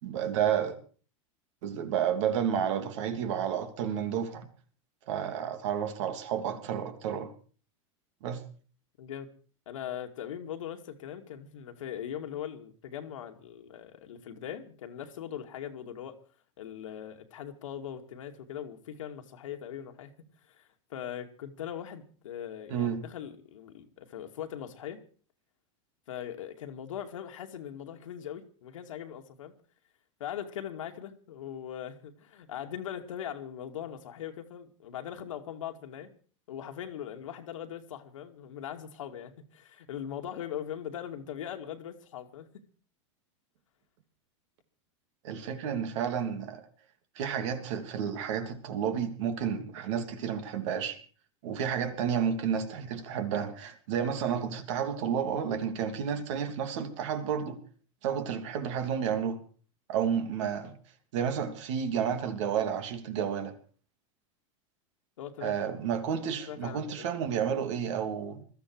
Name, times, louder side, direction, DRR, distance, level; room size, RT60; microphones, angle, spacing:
voice 1, 0.0-0.7 1.6-4.5 5.1-7.3 8.2-8.4 22.7-23.0 45.2-46.6 47.1-51.0 51.4-57.6 58.0-59.4 59.9-60.7 61.1-63.5 65.4-68.4, right 8 dB, 70° right, 3.0 m, -31 dB
voice 2, 9.7-16.2 16.6-20.6 20.9-25.0 26.1-29.5 30.2-36.1 36.5-42.6 65.2-65.6 66.5-67.1, left 9 dB, 85° left, 2.3 m, -40 dB
20.5 x 13.5 x 4.7 m
supercardioid pair, 125°, 16 cm